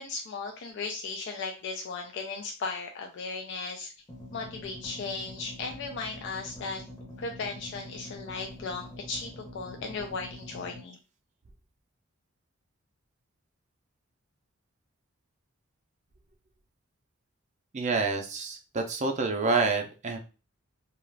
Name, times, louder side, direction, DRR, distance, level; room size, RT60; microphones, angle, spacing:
voice 1, 0.0-3.9 4.3-6.8 7.2-11.0, left 4 dB, 60° left, 3 dB, 0.4 m, -36 dB
sound 1, 4.1-10.8, left 1 dB, 20° left, 0.8 m, -45 dB
voice 2, 17.7-20.2, right 3 dB, 35° right, 4 dB, 0.4 m, -28 dB
2.4 x 2.2 x 3.2 m, 0.32 s
head